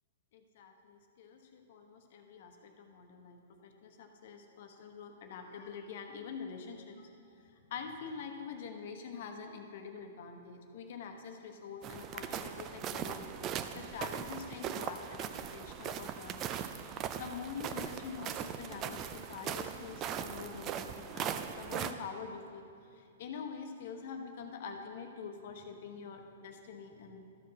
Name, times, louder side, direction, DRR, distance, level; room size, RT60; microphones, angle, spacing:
voice 1, 0.3-16.5 16.9-22.6 22.9-27.3, left 6 dB, 60° left, 5 dB, 1.0 m, -46 dB
sound 1, 11.8-21.9, right 8 dB, 30° right, 0.4 m, -39 dB
12.5 x 4.6 x 6.3 m, 2.4 s
hypercardioid pair, 130°, 0 cm